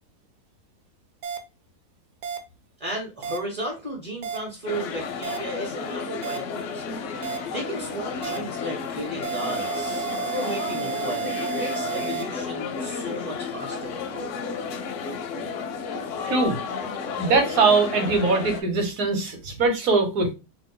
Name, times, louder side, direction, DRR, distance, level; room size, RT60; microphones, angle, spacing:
sound 1, 1.2-1.4 2.2-2.4 3.2-3.4 4.2-4.4 5.2-5.4 6.2-6.4 7.2-7.4 8.2-8.4 9.2-12.2, right 7 dB, 85° right, 1.2 m, -31 dB
voice 1, 2.8-6.9 7.5-14.3, right 1 dB, 35° right, 0.6 m, -34 dB
sound 2, 4.7-18.6, left 5 dB, 70° left, 0.7 m, -32 dB
voice 2, 17.2-20.3, right 4 dB, 65° right, 1.2 m, -21 dB
2.9 x 2.1 x 3.7 m
omnidirectional pair, 1.7 m